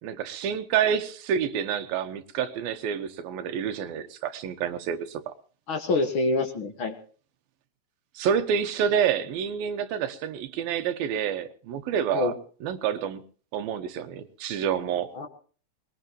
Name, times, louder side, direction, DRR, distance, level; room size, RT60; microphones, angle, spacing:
voice 1, 0.0-5.3 8.1-12.3 12.6-13.2 13.5-15.1, right 8 dB, 85° right, 3.0 m, -28 dB
voice 2, 5.7-6.9 12.1-12.3 15.1-15.3, left 3 dB, 45° left, 1.8 m, -26 dB
21.0 x 20.5 x 3.0 m
omnidirectional pair, 4.1 m